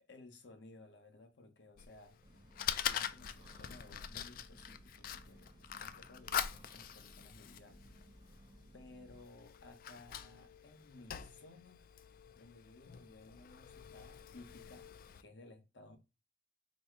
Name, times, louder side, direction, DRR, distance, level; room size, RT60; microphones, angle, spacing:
voice 1, 0.1-2.2 2.8-7.9 8.7-11.8 12.4-14.9 15.2-16.0, left 2 dB, 80° left, 0.9 m, -58 dB
Fire, 1.8-15.2, left 9 dB, 55° left, 0.3 m, -44 dB
sound 1, 2.2-9.2, right 1 dB, 25° right, 0.7 m, -60 dB
4.1 x 2.1 x 4.5 m
head